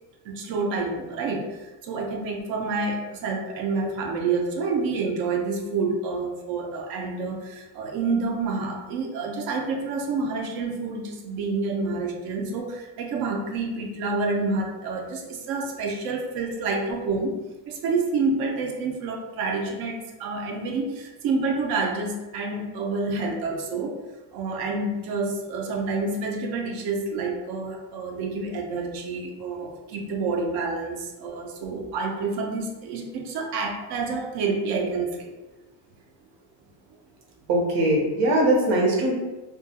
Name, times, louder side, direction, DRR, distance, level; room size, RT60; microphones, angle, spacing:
voice 1, 0.2-17.4 17.7-23.9 24.3-35.3, right 3 dB, 50° right, 1 dB, 0.5 m, -28 dB
voice 2, 37.5-39.1, right 1 dB, 90° right, -2 dB, 0.9 m, -21 dB
2.3 x 2.2 x 2.7 m, 1.1 s
cardioid pair, 165°, 48 cm